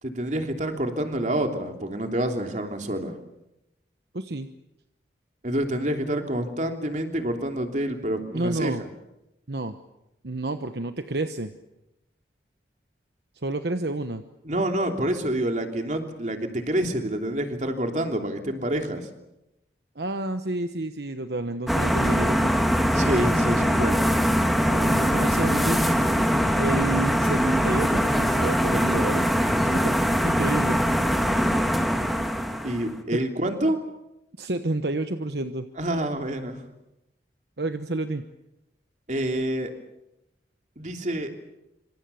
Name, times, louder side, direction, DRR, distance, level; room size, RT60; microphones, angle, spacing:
voice 1, 0.0-3.1 5.4-8.9 14.4-19.1 22.9-24.0 32.6-33.8 35.8-36.6 39.1-39.7 40.8-41.3, right 1 dB, 45° right, 4 dB, 3.1 m, -27 dB
voice 2, 4.1-4.5 8.3-8.8 9.5-9.8 10.2-11.5 13.4-14.2 20.0-22.5 24.7-25.9 26.6-29.3 29.7-29.9 30.2-30.8 33.1-33.2 34.4-35.7 37.6-38.2, right 2 dB, 65° right, 8 dB, 1.1 m, -29 dB
sound 1, 21.7-32.9, equal, ahead, 2.1 m, -22 dB
27.0 x 25.5 x 7.0 m, 0.91 s
head